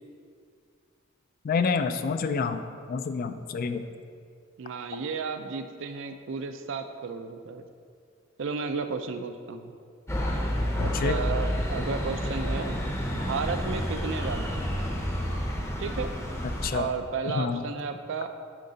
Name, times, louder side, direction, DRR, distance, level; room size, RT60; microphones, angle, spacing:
voice 1, 1.4-2.6 2.9-3.8 10.8-11.2 16.6-16.9 17.3-17.6, left 5 dB, 45° left, 10 dB, 0.3 m, -28 dB
voice 2, 4.6-7.7 8.4-9.7 10.8-12.8 13.1-14.8 15.8-16.1 16.7-18.3, right 5 dB, 70° right, 8 dB, 0.4 m, -33 dB
sound 1, 10.1-16.7, equal, 15° left, 0.7 m, -29 dB
9.6 x 3.7 x 3.9 m, 2.2 s
head